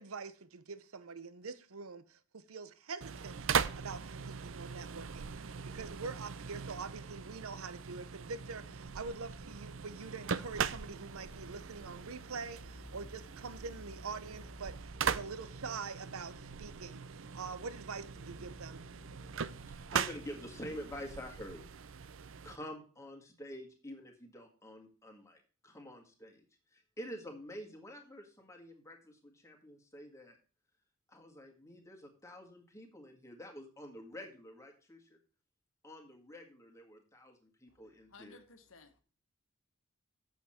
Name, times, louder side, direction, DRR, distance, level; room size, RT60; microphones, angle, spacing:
voice 1, 0.0-18.9, right 4 dB, 85° right, 0.8 m, -45 dB
sound 1, 3.0-22.6, right 6 dB, 65° right, 0.5 m, -40 dB
sound 2, 8.3-20.6, left 2 dB, 35° left, 0.9 m, -57 dB
voice 2, 19.9-21.7 22.4-30.4 31.1-35.2 35.8-38.4, equal, 15° left, 1.7 m, -48 dB
voice 3, 38.1-39.0, left 4 dB, 70° left, 1.3 m, -56 dB
8.4 x 7.2 x 4.3 m
head